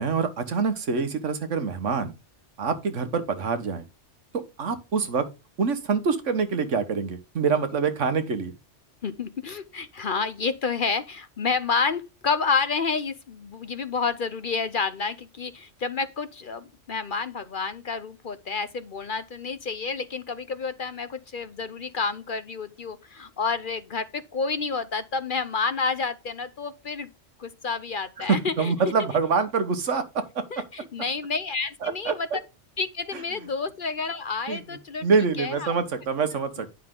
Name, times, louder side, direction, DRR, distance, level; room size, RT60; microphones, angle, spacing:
voice 1, 0.0-2.1 2.6-3.8 4.3-5.3 5.6-8.5 28.2-30.6 31.8-32.4 34.5-34.6 35.0-36.7, right 5 dB, 85° right, 1.6 m, -25 dB
voice 2, 9.0-27.1 27.4-28.7 30.5-32.3 32.8-35.1 35.4-35.7, left 4 dB, 50° left, 0.8 m, -29 dB
9.9 x 6.5 x 3.8 m
omnidirectional pair, 1.2 m